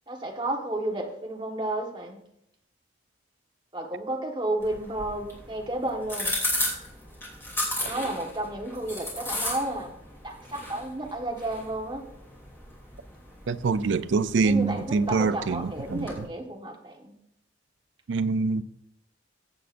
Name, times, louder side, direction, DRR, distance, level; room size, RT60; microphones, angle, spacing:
voice 1, 0.1-2.2 3.7-6.3 7.8-10.0 10.2-12.0 14.4-17.1, right 1 dB, 25° right, 1.4 m, -32 dB
sound 1, 4.6-16.2, left 1 dB, 10° left, 2.9 m, -35 dB
voice 2, 13.5-16.3 18.1-18.6, right 4 dB, 70° right, 0.4 m, -25 dB
15.0 x 7.7 x 2.6 m
head